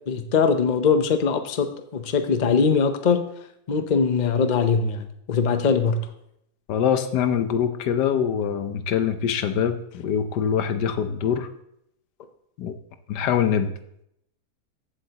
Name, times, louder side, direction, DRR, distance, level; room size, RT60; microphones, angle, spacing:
voice 1, 0.1-3.2 3.7-6.0, left 5 dB, 45° left, 8 dB, 0.6 m, -21 dB
voice 2, 6.7-11.5 12.6-12.7 13.1-13.7, left 8 dB, 85° left, 9 dB, 1.4 m, -24 dB
14.5 x 7.8 x 2.9 m, 0.75 s
omnidirectional pair, 1.8 m